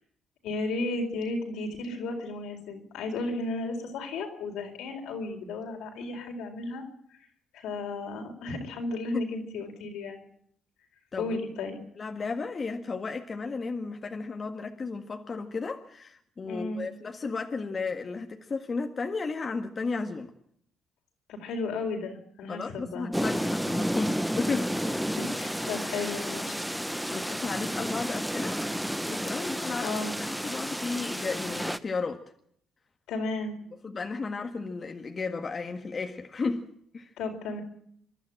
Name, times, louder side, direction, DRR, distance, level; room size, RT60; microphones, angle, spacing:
voice 1, 0.4-6.8 7.5-10.2 11.2-11.8 16.4-16.9 21.3-23.1 25.2-26.6 29.8-30.1 33.1-33.6 37.2-37.6, left 3 dB, 90° left, 3 dB, 4.4 m, -34 dB
voice 2, 12.0-20.3 22.5-25.1 27.1-28.6 29.1-30.0 30.3-32.2 33.8-37.1, left 4 dB, 35° left, 4 dB, 1.8 m, -34 dB
sound 1, 23.1-31.8, equal, ahead, 0.9 m, -31 dB
26.0 x 12.0 x 9.0 m, 0.68 s
cardioid pair, 90°, 0 cm